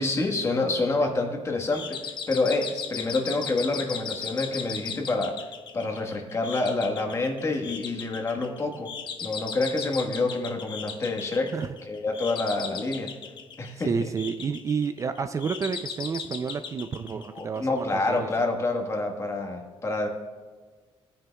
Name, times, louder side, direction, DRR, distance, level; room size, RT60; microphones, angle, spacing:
voice 1, 0.0-5.4 5.7-8.9 9.2-11.5 11.8-13.1 13.6-14.1 17.3-20.1, left 2 dB, 30° left, 3 dB, 1.4 m, -27 dB
sound 1, 1.7-17.8, left 6 dB, 50° left, 0.7 m, -37 dB
voice 2, 13.9-18.5, right 5 dB, 30° right, 9 dB, 0.4 m, -30 dB
17.5 x 9.8 x 2.3 m, 1.5 s
cardioid pair, 130°, 10 cm